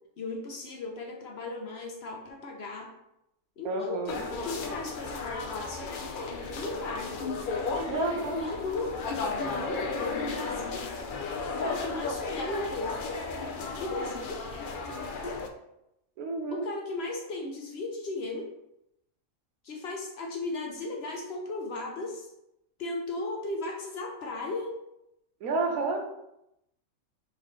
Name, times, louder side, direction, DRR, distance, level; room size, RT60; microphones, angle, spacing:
voice 1, 0.2-2.9 3.6-7.1 7.7-9.0 9.3-10.8 11.4-13.2 13.8-14.4 16.5-18.5 19.6-22.3 22.8-24.8, left 2 dB, 55° left, 2 dB, 0.8 m, -36 dB
voice 2, 3.6-4.2 7.9-8.4 16.2-16.7 25.4-26.0, right 3 dB, 90° right, 3 dB, 1.2 m, -30 dB
sound 1, 4.1-15.5, left 4 dB, 85° left, 0.4 m, -34 dB
4.0 x 4.0 x 3.2 m, 0.84 s
omnidirectional pair, 1.5 m